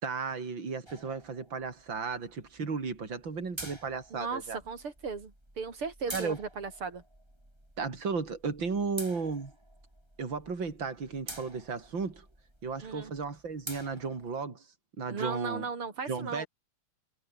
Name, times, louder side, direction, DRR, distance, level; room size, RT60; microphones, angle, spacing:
voice 1, 0.0-4.6 6.1-6.4 7.8-9.5 10.2-12.3 12.6-14.6 15.0-15.6 16.1-16.5, right 4 dB, 60° right, 4.4 m, -34 dB
sound 1, 0.9-14.4, right 1 dB, 10° right, 6.9 m, -49 dB
voice 2, 4.1-7.0 12.8-13.1 15.1-16.5, right 5 dB, 85° right, 4.3 m, -37 dB
omnidirectional pair, 2.4 m